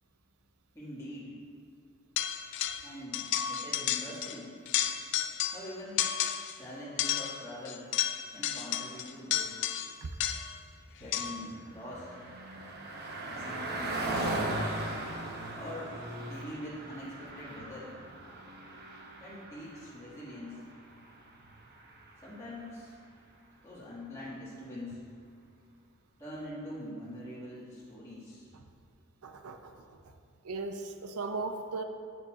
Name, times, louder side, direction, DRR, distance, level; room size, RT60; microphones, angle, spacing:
voice 1, 0.7-1.3 2.8-4.5 5.5-6.0 6.5-7.9 8.3-9.5 11.0-12.1 13.2-14.3 15.6-15.9 16.2-17.9 19.2-20.6 22.2-22.9 23.6-25.0 26.2-28.5, left 1 dB, 15° left, -10 dB, 1.8 m, -43 dB
sound 1, 2.2-2.9 3.1-4.4 4.7-5.7 6.0-6.6 7.0-10.6 11.1-11.5, left 10 dB, 55° left, 0.4 m, -32 dB
Car passing by, 11.1-22.8, right 1 dB, 45° right, 0.9 m, -39 dB
voice 2, 29.2-30.1 30.4-31.8, right 3 dB, 85° right, 7 dB, 0.6 m, -38 dB
10.5 x 8.3 x 2.4 m, 2.3 s
head